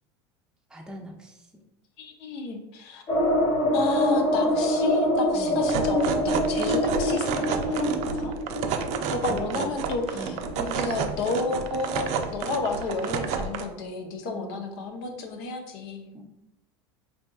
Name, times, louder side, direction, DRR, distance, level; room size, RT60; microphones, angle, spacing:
voice 1, 0.7-1.4 5.3-5.6 9.3-9.7 10.1-10.5 14.2-14.6 16.1-16.2, right 1 dB, 5° right, 1 dB, 0.6 m, -40 dB
voice 2, 2.0-3.0 3.7-8.3 9.1-16.1, left 3 dB, 65° left, 4 dB, 0.7 m, -32 dB
sound 1, 3.1-11.6 11.9-12.0 12.3-12.4, left 1 dB, 35° left, 1.1 m, -25 dB
sound 2, 5.6-13.7, right 6 dB, 50° right, 0.4 m, -30 dB
4.3 x 2.8 x 2.3 m, 0.91 s
hypercardioid pair, 90°, 15 cm